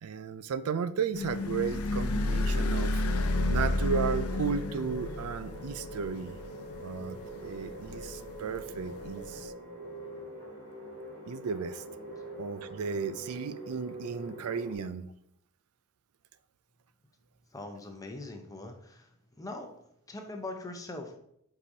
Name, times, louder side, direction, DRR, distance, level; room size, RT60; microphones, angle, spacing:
voice 1, 0.0-3.0 3.5-6.4 6.7-9.5 11.3-11.8 12.4-15.1, right 6 dB, 90° right, 14 dB, 0.4 m, -34 dB
sound 1, 1.1-9.4, left 2 dB, 85° left, 0.6 m, -32 dB
sound 2, 3.0-14.8, right 1 dB, 65° right, 2.3 m, -44 dB
voice 2, 17.5-19.1 19.4-19.7 20.1-21.2, left 2 dB, 15° left, 3 dB, 0.7 m, -41 dB
7.5 x 4.9 x 2.7 m, 0.73 s
head